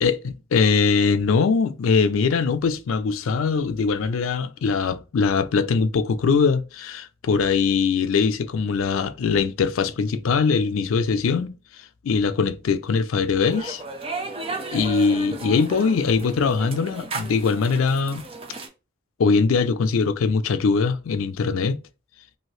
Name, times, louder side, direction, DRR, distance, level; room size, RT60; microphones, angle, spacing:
voice 1, 0.0-11.6 12.0-13.8 14.7-18.2 19.2-21.8, left 5 dB, 85° left, 0.4 m, -22 dB
sound 1, 13.5-18.7, right 3 dB, 25° right, 0.5 m, -34 dB
2.8 x 2.7 x 3.0 m
head